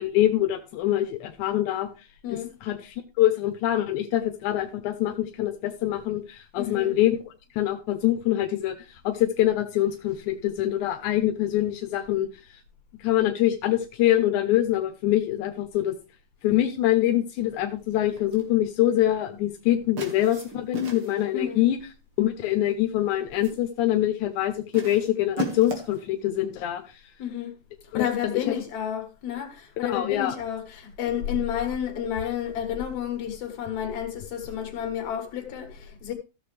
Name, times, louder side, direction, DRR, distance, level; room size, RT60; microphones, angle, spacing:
voice 1, 0.0-1.9 2.3-7.2 7.6-12.6 13.0-16.0 16.4-21.8 22.2-26.8 27.9-28.1 28.3-28.6 29.8-30.3, left 13 dB, 90° left, 2.2 m, -24 dB
voice 2, 6.6-6.9 21.3-21.6 27.2-27.5 27.9-36.1, left 9 dB, 70° left, 2.9 m, -31 dB
sound 1, 18.2-18.5 20.0-21.3 22.3-22.7 23.1-23.7 24.7-26.0, equal, 50° right, 2.5 m, -36 dB
14.5 x 6.7 x 3.3 m
omnidirectional pair, 3.3 m